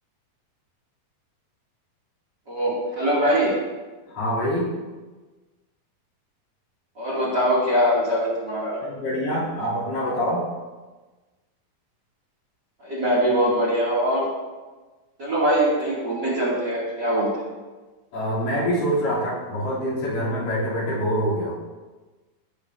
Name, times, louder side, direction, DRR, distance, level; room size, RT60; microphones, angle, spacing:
voice 1, 2.5-3.5 7.0-8.8 12.8-14.2 15.2-17.5, equal, 30° right, -7 dB, 2.8 m, -22 dB
voice 2, 4.1-4.8 8.8-10.5 18.1-21.5, equal, 65° left, -8 dB, 4.8 m, -25 dB
17.0 x 8.8 x 2.8 m, 1.2 s
omnidirectional pair, 4.3 m